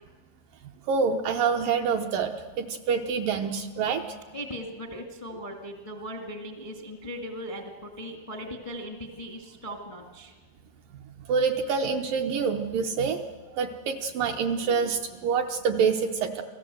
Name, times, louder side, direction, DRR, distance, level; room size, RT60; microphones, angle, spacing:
voice 1, 0.9-4.0 11.3-13.2 13.5-16.4, right 5 dB, 75° right, 4 dB, 2.2 m, -26 dB
voice 2, 4.3-10.3, equal, 25° left, 3 dB, 0.6 m, -38 dB
28.0 x 18.5 x 7.8 m, 1.3 s
omnidirectional pair, 4.8 m